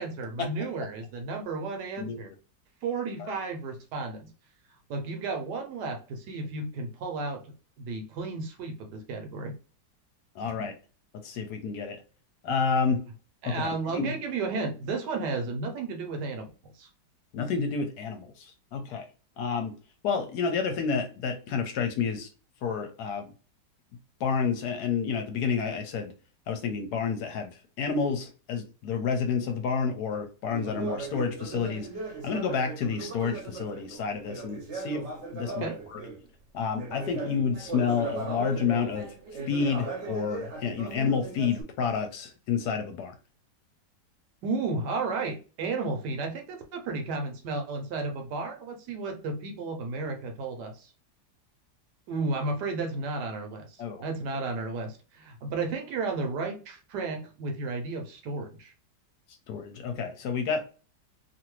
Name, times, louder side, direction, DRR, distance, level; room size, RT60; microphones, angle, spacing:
voice 1, 0.0-2.3 2.8-4.3 4.9-9.5 13.4-16.9 35.5-35.8 44.4-50.9 52.1-58.7, right 3 dB, 75° right, 4 dB, 1.2 m, -33 dB
voice 2, 10.4-10.7 11.2-12.0 12.4-13.0 13.5-14.1 17.3-19.1 19.4-19.8 20.0-22.3 22.6-23.3 24.2-26.1 26.5-31.9 32.2-35.1 35.3-36.0 36.5-39.1 39.5-43.1 53.8-54.0 59.5-60.6, left 5 dB, 75° left, 5 dB, 1.1 m, -29 dB
Conversation, 30.5-36.2 36.7-41.6, right 3 dB, 50° right, 0.9 m, -38 dB
2.8 x 2.5 x 3.0 m, 0.36 s
omnidirectional pair, 1.9 m